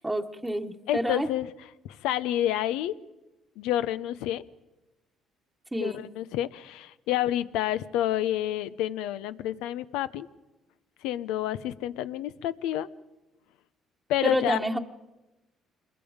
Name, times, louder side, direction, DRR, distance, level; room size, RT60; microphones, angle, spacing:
voice 1, 0.0-1.3 5.7-6.1 14.2-14.8, right 1 dB, 10° right, 4 dB, 1.2 m, -29 dB
voice 2, 0.9-1.5 1.8-2.9 3.6-4.4 5.8-10.3 11.0-12.9 14.1-14.6, left 12 dB, 90° left, 15 dB, 0.7 m, -29 dB
26.5 x 22.0 x 5.1 m, 1.0 s
cardioid pair, 90°, 0 cm